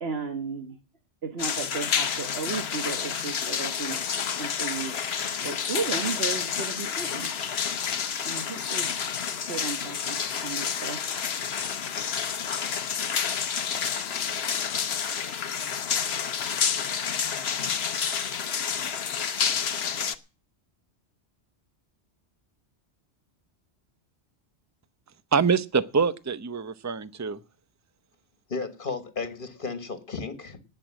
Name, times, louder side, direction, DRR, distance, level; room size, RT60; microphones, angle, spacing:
voice 1, 0.0-0.8 1.2-4.0 4.4-5.0 5.4-7.3 8.2-9.0 9.5-11.0, right 5 dB, 65° right, 1.5 m, -34 dB
sound 1, 1.4-20.1, left 7 dB, 65° left, 1.1 m, -29 dB
voice 2, 25.3-27.4, right 5 dB, 20° right, 0.6 m, -25 dB
voice 3, 28.5-30.6, left 4 dB, 50° left, 1.9 m, -34 dB
18.5 x 6.6 x 7.5 m
omnidirectional pair, 1.1 m